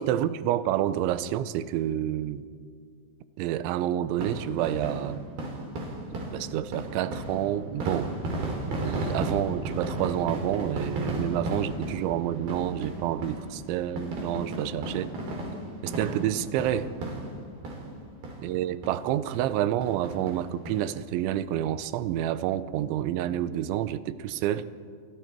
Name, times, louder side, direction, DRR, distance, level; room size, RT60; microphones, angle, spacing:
voice 1, 0.0-2.4 3.4-5.2 6.3-8.1 8.8-15.1 15.8-16.9 18.4-24.7, right 12 dB, 85° right, 14 dB, 3.1 m, -28 dB
sound 1, 4.1-18.0 18.2-18.4 18.8-18.9 19.3-19.5 19.8-20.8 21.2-21.3 21.5-21.6, right 2 dB, 55° right, 5.2 m, -34 dB
29.0 x 24.5 x 4.5 m, 2.1 s
omnidirectional pair, 5.3 m